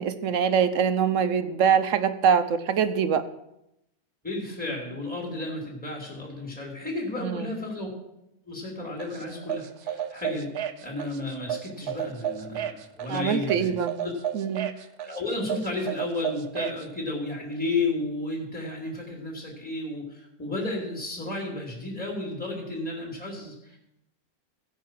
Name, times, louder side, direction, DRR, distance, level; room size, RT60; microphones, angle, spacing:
voice 1, 0.0-3.2 7.2-7.5 13.1-13.9 14.3-14.7, right 7 dB, 60° right, 11 dB, 1.1 m, -24 dB
voice 2, 4.2-7.9 8.4-10.5 10.8-13.8 14.0-14.1 14.7-23.8, left 2 dB, 5° left, -1 dB, 2.8 m, -33 dB
sound 1, 9.0-16.8, right 10 dB, 90° right, 1.3 m, -33 dB
16.0 x 5.5 x 7.5 m, 0.84 s
omnidirectional pair, 1.6 m